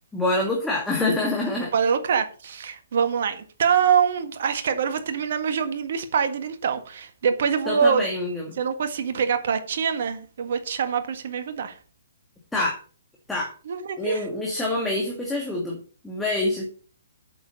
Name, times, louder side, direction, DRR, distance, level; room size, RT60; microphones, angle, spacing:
voice 1, 0.1-1.7 7.7-8.6 12.5-12.8 13.3-13.5 14.0-16.7, left 2 dB, 5° left, 2.1 m, -26 dB
voice 2, 1.7-8.1 8.6-11.7 13.7-14.2, right 7 dB, 50° right, 1.7 m, -24 dB
8.5 x 7.0 x 6.6 m
figure-of-eight pair, 130°, 0 cm